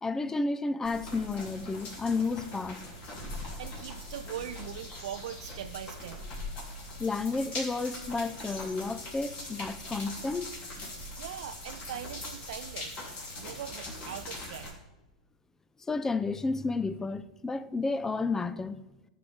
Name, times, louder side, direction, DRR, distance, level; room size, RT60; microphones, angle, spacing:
voice 1, 0.0-2.8 7.0-10.6 15.9-18.8, left 3 dB, 15° left, 0.5 m, -31 dB
sound 1, 0.8-14.7, left 2 dB, 40° left, 3.5 m, -41 dB
voice 2, 3.6-6.2 11.2-13.0 13.4-14.8, right 11 dB, 65° right, 0.4 m, -41 dB
14.5 x 6.3 x 3.6 m
hypercardioid pair, 95°, 4 cm